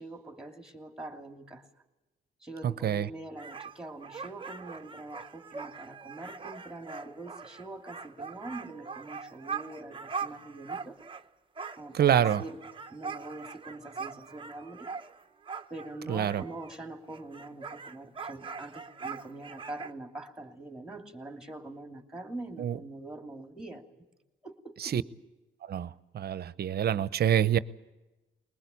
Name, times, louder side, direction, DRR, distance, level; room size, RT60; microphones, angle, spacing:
voice 1, 0.0-1.7 2.4-11.0 11.8-14.9 15.7-23.8 24.4-24.8, right 2 dB, 5° right, 2.9 m, -44 dB
sound 1, 3.4-11.3 11.6-16.8 17.1-19.9, right 5 dB, 25° right, 0.9 m, -41 dB
voice 2, 11.9-12.4 16.1-16.4 22.6-22.8 24.8-25.0 25.7-27.6, right 10 dB, 55° right, 0.8 m, -26 dB
21.5 x 20.0 x 8.5 m
cardioid pair, 90°, 20 cm